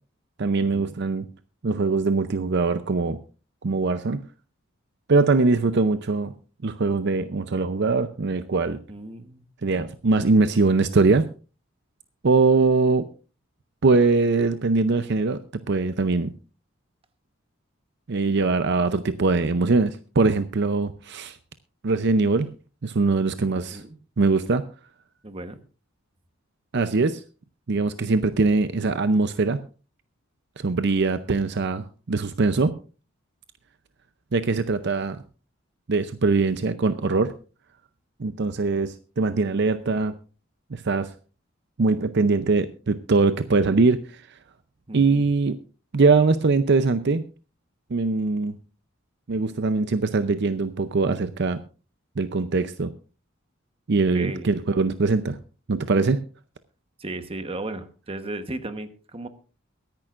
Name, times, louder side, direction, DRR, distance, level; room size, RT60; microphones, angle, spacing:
voice 1, 0.4-1.2 1.6-3.2 3.6-4.2 5.1-6.3 6.6-8.8 9.6-11.2 12.2-13.1 13.8-15.4 15.7-16.3 18.1-21.4 21.8-22.5 22.8-23.8 24.2-24.6 26.7-27.2 27.7-29.6 30.6-32.7 34.3-35.2 35.9-37.3 38.2-40.1 40.7-41.1 41.8-44.2 44.9-45.6 45.9-47.2 47.9-48.6 49.3-51.6 52.2-52.9 53.9-55.4 55.7-56.2, right 3 dB, 60° right, 11 dB, 0.6 m, -22 dB
voice 2, 8.9-9.4 23.7-24.0 25.2-25.6 44.9-45.2 54.1-54.5 57.0-59.3, right 2 dB, 30° right, 9 dB, 1.1 m, -35 dB
22.5 x 10.5 x 2.5 m, 0.35 s
head